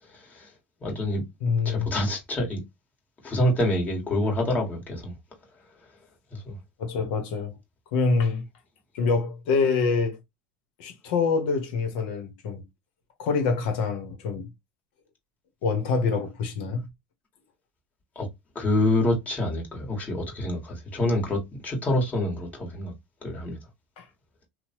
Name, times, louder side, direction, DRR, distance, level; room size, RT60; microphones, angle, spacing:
voice 1, 0.1-0.5 0.8-1.2 1.6-2.6 3.2-5.1 6.3-6.5 18.1-18.3 18.5-22.9 23.2-23.6, left 1 dB, 30° left, 1.7 m, -26 dB
voice 2, 1.4-1.9 6.8-7.5 7.9-8.4 8.9-10.2 10.8-12.6 13.2-14.5 15.6-16.9 24.0-24.1, left 4 dB, 75° left, 1.0 m, -25 dB
2.9 x 2.2 x 2.8 m
supercardioid pair, 100°, 5 cm